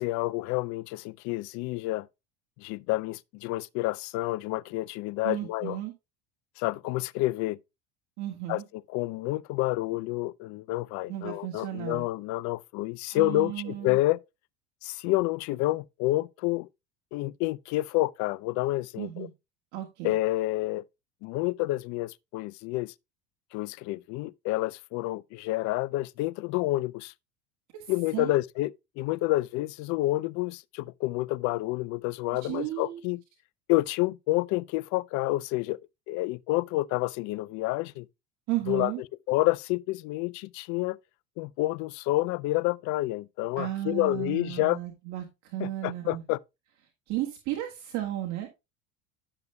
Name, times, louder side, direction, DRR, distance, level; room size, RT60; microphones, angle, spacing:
voice 1, 0.0-2.1 2.6-5.8 6.6-7.6 8.5-8.6 8.9-14.2 14.8-16.7 17.1-19.3 20.0-20.8 21.2-22.9 23.5-27.1 27.9-33.2 33.7-35.8 36.1-38.1 38.7-38.9 39.3-41.0 41.4-44.8 45.6-46.4, left 18 dB, 55° left, 0.5 m, -29 dB
voice 2, 5.2-5.9 8.2-8.6 11.1-12.0 13.1-14.0 19.0-19.3 19.7-20.1 27.7-28.4 32.4-33.0 38.5-39.0 43.6-46.2 47.1-48.5, right 14 dB, 55° right, 1.7 m, -34 dB
11.0 x 6.8 x 2.2 m
supercardioid pair, 95°, 35 cm